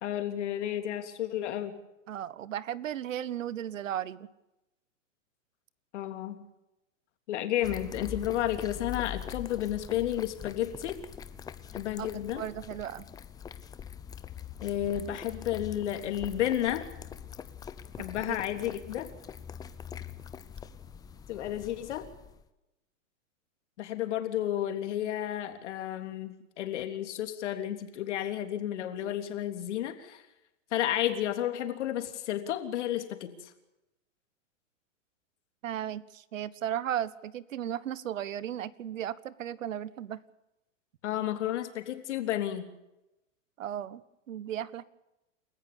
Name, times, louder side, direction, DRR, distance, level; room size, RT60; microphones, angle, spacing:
voice 1, 0.0-1.8 5.9-6.5 7.3-11.0 11.7-12.4 14.6-16.8 18.0-19.1 21.3-22.1 23.8-30.2 30.7-33.5 41.0-42.7, left 12 dB, 65° left, 7 dB, 3.4 m, -32 dB
voice 2, 2.1-4.3 12.0-12.1 12.3-13.1 18.3-18.4 35.6-40.2 43.6-44.0 44.3-44.9, right 11 dB, 80° right, 18 dB, 1.5 m, -35 dB
sound 1, 7.6-22.4, left 8 dB, 10° left, 0.7 m, -43 dB
29.0 x 14.5 x 7.0 m, 0.93 s
hypercardioid pair, 150°, 38 cm